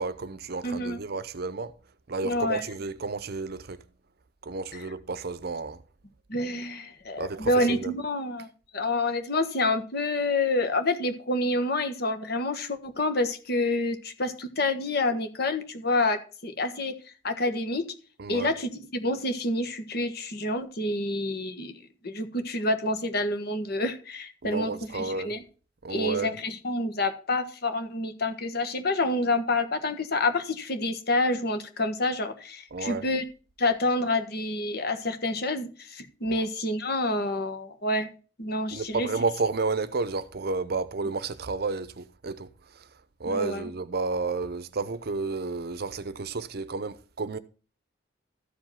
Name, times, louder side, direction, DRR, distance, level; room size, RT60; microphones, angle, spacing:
voice 1, 0.0-1.7 2.1-3.8 4.4-5.8 7.2-7.9 18.2-18.5 24.4-25.3 25.8-26.3 32.7-33.1 36.3-36.5 38.7-42.5 42.8-42.9 43.2-47.4, right 3 dB, 55° right, 0.7 m, -31 dB
voice 2, 0.6-1.0 2.2-2.6 4.7-4.9 6.3-16.9 17.2-17.9 18.3-25.4 25.9-33.2 33.6-38.1 38.4-39.1 43.2-43.7, left 2 dB, 55° left, 1.5 m, -28 dB
13.5 x 5.2 x 5.7 m
head